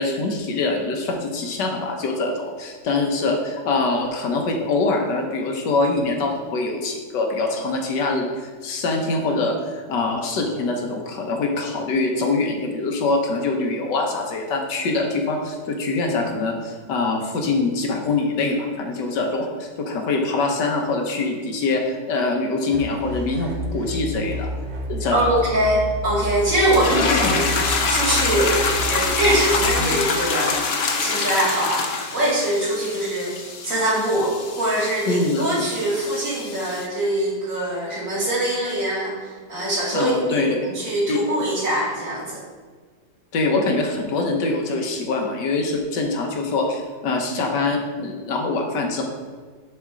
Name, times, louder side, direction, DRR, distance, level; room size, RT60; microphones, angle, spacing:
voice 1, 0.0-24.5 24.9-25.2 27.2-27.4 29.8-29.9 35.1-35.5 39.9-40.5 41.1-41.2 43.3-49.0, left 3 dB, 80° left, 2 dB, 1.7 m, -24 dB
sound 1, 22.7-29.7, equal, 90° right, 2.0 m, -30 dB
voice 2, 25.1-33.3 33.6-42.4, right 1 dB, 50° right, -5 dB, 2.6 m, -23 dB
sound 2, 26.7-36.9, left 4 dB, 50° left, 0.7 m, -25 dB
10.5 x 4.3 x 3.7 m, 1.5 s
omnidirectional pair, 1.9 m